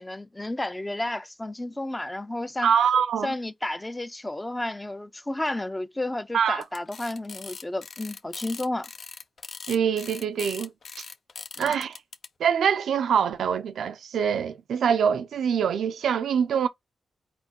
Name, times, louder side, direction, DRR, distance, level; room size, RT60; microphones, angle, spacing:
voice 1, 0.0-2.7 3.2-8.9 11.6-11.8, left 1 dB, 15° left, 0.5 m, -32 dB
voice 2, 2.6-3.3 6.3-6.6 9.7-10.7 11.6-12.0 12.4-16.7, right 7 dB, 85° right, 0.5 m, -24 dB
sound 1, 6.6-12.3, left 5 dB, 60° left, 0.6 m, -40 dB
4.4 x 4.2 x 2.8 m
cardioid pair, 70°, 0 cm